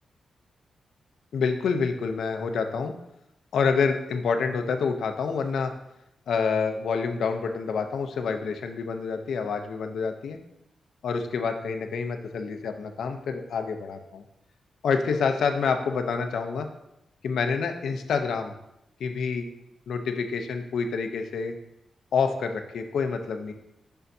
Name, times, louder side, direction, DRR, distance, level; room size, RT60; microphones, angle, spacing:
voice 1, 1.3-2.9 3.5-5.7 6.3-10.4 11.0-14.2 14.8-16.7 17.2-18.5 19.0-19.5 19.9-21.5 22.1-23.5, left 5 dB, 80° left, 6 dB, 0.6 m, -27 dB
6.7 x 5.7 x 2.7 m, 0.83 s
wide cardioid pair, 150°, 0 cm